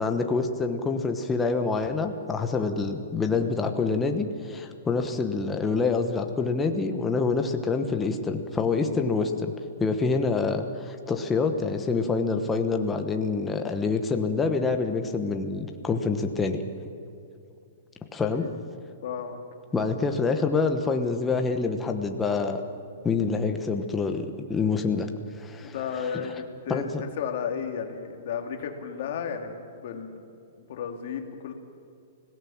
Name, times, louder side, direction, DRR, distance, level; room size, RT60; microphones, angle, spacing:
voice 1, 0.0-9.5 9.8-16.6 18.1-18.5 19.7-22.6 23.0-25.1 25.3-25.7 26.1-26.3 26.7-27.0, left 4 dB, 10° left, 5 dB, 1.1 m, -26 dB
voice 2, 19.0-19.4 25.6-26.8 27.2-30.2 30.6-31.5, left 7 dB, 50° left, 4 dB, 2.4 m, -33 dB
25.0 x 17.0 x 7.3 m, 2.5 s
hypercardioid pair, 170°, 0 cm